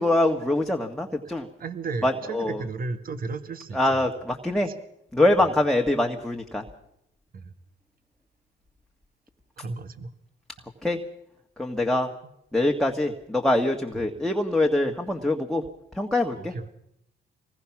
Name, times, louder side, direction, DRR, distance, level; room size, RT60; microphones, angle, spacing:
voice 1, 0.0-1.5 2.0-2.6 3.7-4.7 5.1-6.6 10.8-11.0 11.6-12.1 12.5-15.6 15.9-16.5, left 1 dB, ahead, 1 dB, 1.7 m, -24 dB
voice 2, 1.6-4.0 7.3-7.5 9.6-10.1 16.4-16.7, right 3 dB, 45° right, 10 dB, 1.6 m, -34 dB
26.0 x 20.5 x 6.1 m, 0.78 s
cardioid pair, 90°, 20 cm